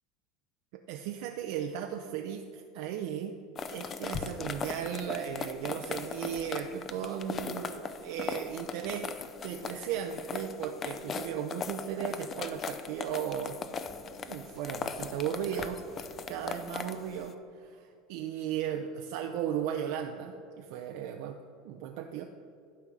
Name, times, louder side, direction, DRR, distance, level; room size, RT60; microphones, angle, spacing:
voice 1, 0.7-3.3 3.7-9.1 9.4-13.6 14.3-22.2, right 9 dB, 65° right, 5 dB, 0.5 m, -36 dB
sound 1, 3.6-17.3, left 5 dB, 35° left, 0.6 m, -39 dB
11.5 x 4.7 x 5.4 m, 2.4 s
hypercardioid pair, 85°, 0 cm